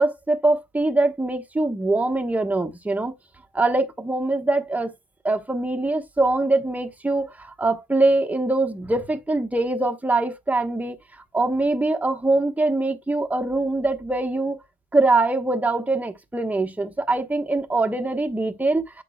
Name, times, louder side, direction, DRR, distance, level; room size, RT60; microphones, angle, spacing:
voice 1, 0.0-3.1 3.5-4.9 5.2-10.9 11.3-14.6 14.9-19.0, right 2 dB, 10° right, 1.1 m, -23 dB
8.1 x 6.0 x 2.3 m
cardioid pair, 90°, 20 cm